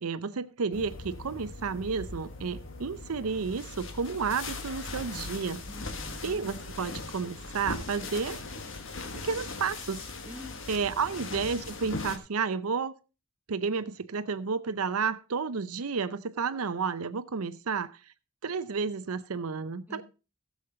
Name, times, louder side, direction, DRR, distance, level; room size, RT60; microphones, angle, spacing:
voice 1, 0.0-5.6 6.2-8.4 9.2-10.0 10.7-12.9 13.5-17.9 18.4-20.0, right 5 dB, 85° right, 13 dB, 0.6 m, -31 dB
sound 1, 0.7-12.2, left 3 dB, 60° left, 1.4 m, -40 dB
voice 2, 5.7-6.4 10.2-11.0 19.9-20.0, left 1 dB, 10° right, 3 dB, 1.4 m, -47 dB
15.5 x 7.2 x 3.9 m, 0.31 s
head